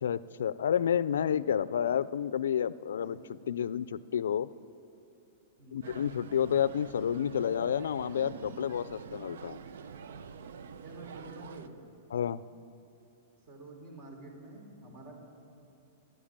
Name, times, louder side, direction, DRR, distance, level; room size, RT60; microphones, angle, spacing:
voice 1, 0.0-4.5 5.7-9.6 12.1-12.4, left 9 dB, 85° left, 18 dB, 0.4 m, -30 dB
voice 2, 5.6-6.0 10.8-11.7 13.5-15.2, right 2 dB, 40° right, 2 dB, 3.7 m, -49 dB
sound 1, 5.8-11.7, right 6 dB, 80° right, 0.7 m, -46 dB
13.5 x 11.0 x 8.8 m, 2.7 s
hypercardioid pair, 140°, 0 cm